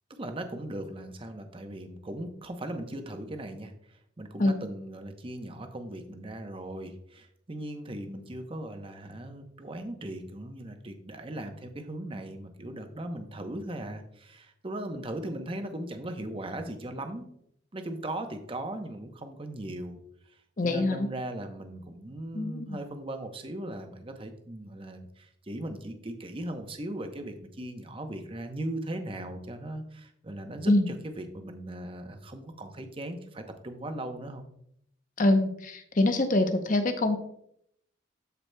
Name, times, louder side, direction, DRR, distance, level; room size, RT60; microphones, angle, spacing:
voice 1, 0.2-17.3 17.7-20.0 20.6-34.4, right 1 dB, 30° right, 6 dB, 0.8 m, -38 dB
voice 2, 20.6-21.1 22.3-22.8 30.7-30.9 35.2-37.2, left 2 dB, 45° left, 7 dB, 0.8 m, -25 dB
13.5 x 4.8 x 2.2 m, 0.71 s
head